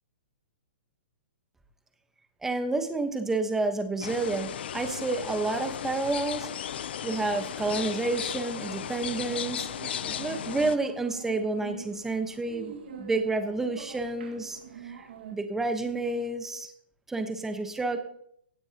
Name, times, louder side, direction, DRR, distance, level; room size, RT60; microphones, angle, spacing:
voice 1, 2.4-6.5 7.0-9.7 10.0-16.7 17.1-18.0, right 3 dB, 5° right, 7 dB, 1.1 m, -30 dB
sound 1, 4.0-10.8, left 10 dB, 70° left, 0.6 m, -35 dB
sound 2, 8.9-15.4, right 7 dB, 70° right, 1.9 m, -44 dB
16.5 x 9.0 x 2.9 m, 0.68 s
hypercardioid pair, 150°, 6 cm